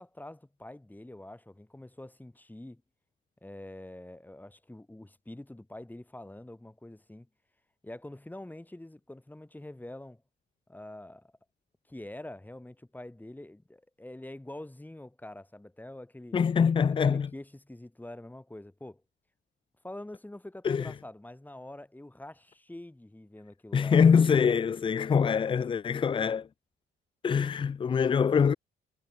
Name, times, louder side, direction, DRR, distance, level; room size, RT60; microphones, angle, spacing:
voice 1, 0.0-2.8 3.4-7.3 7.8-10.2 10.7-11.3 11.9-16.4 17.0-19.0 19.8-24.0 24.4-24.5, left 1 dB, 10° left, 4.1 m, -45 dB
voice 2, 16.3-17.3 20.6-20.9 23.7-26.5 27.2-28.5, left 6 dB, 25° left, 0.4 m, -24 dB
cardioid pair, 90°, 20 cm